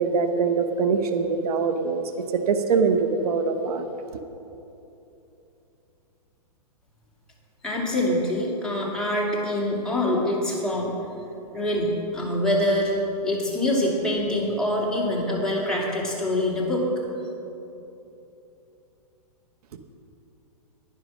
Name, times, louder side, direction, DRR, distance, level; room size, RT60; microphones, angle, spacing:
voice 1, 0.0-2.0 2.5-3.9, right 5 dB, 70° right, 7 dB, 1.0 m, -23 dB
voice 2, 7.6-10.9 11.5-12.9 13.2-16.8, left 1 dB, 5° left, -6 dB, 2.4 m, -25 dB
10.5 x 9.7 x 6.2 m, 2.9 s
hypercardioid pair, 145°, 20 cm